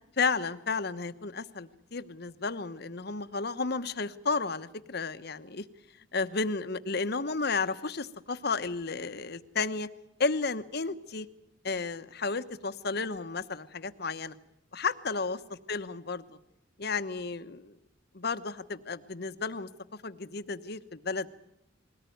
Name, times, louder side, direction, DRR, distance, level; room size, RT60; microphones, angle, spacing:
voice 1, 0.2-5.6 6.1-9.9 10.2-11.3 11.6-14.3 14.7-15.4 15.7-16.4 16.8-17.8 18.1-19.7 20.0-21.3, left 4 dB, 55° left, 11 dB, 1.1 m, -32 dB
21.5 x 18.5 x 9.3 m, 0.80 s
head